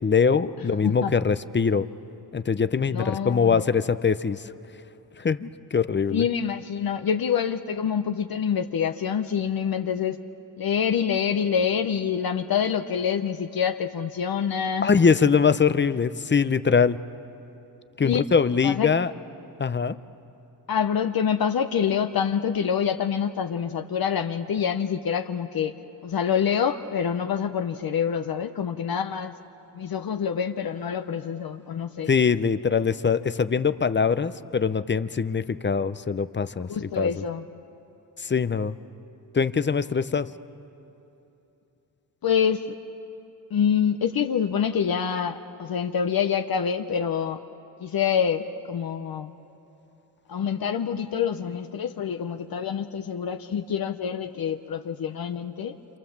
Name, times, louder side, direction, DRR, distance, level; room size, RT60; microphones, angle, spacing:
voice 1, 0.0-1.9 2.3-4.5 5.2-6.3 14.8-17.0 18.0-19.1 19.6-20.0 32.1-37.1 38.2-38.8 39.3-40.3, left 5 dB, 25° left, 13 dB, 0.7 m, -23 dB
voice 2, 2.9-3.6 6.1-10.2 10.6-14.9 18.0-18.2 18.6-18.9 20.7-25.7 26.0-29.3 29.7-32.1 36.7-37.5 42.2-42.7 43.5-47.4 47.8-49.3 50.3-55.7, left 7 dB, 55° left, 6 dB, 0.9 m, -26 dB
27.5 x 27.0 x 7.3 m, 2.9 s
cardioid pair, 90°, 42 cm